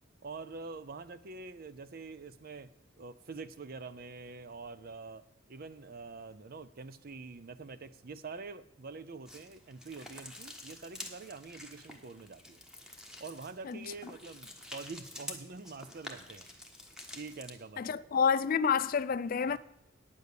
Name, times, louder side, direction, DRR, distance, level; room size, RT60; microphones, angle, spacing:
voice 1, 0.2-2.7 3.0-12.6 13.2-16.5 17.1-18.1 19.5-19.6, right 4 dB, 50° right, 0.6 m, -46 dB
sound 1, 9.3-17.6, left 1 dB, 5° right, 1.2 m, -48 dB
voice 2, 17.8-19.6, left 6 dB, 45° left, 0.4 m, -28 dB
9.5 x 8.5 x 6.7 m
head